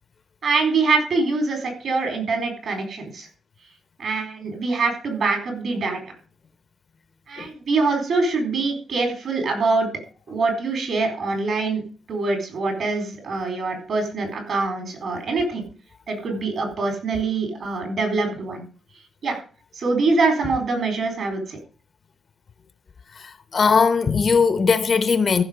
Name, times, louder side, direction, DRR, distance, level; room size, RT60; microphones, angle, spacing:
voice 1, 0.4-3.3 4.0-6.0 7.3-9.9 10.3-11.8 12.1-15.7 16.1-18.6 19.2-19.4 19.7-21.6, right 3 dB, 60° right, 4.1 m, -24 dB
voice 2, 23.2-25.4, left 5 dB, 40° left, 0.8 m, -19 dB
14.5 x 6.3 x 5.1 m
wide cardioid pair, 135°, 0 cm